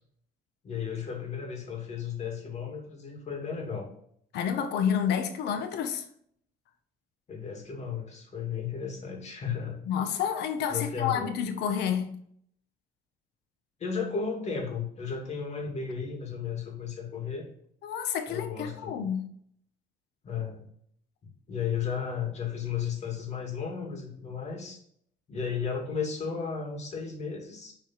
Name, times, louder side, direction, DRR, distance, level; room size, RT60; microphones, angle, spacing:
voice 1, 0.6-3.9 7.3-9.9 10.7-11.4 13.8-17.5 18.3-19.1 20.2-20.7 21.5-24.8 25.3-27.7, left 6 dB, 40° left, 2.9 m, -34 dB
voice 2, 4.3-6.0 9.9-12.1 17.8-19.2, left 8 dB, 80° left, 1.3 m, -29 dB
7.9 x 4.7 x 4.7 m
cardioid pair, 110°, 17 cm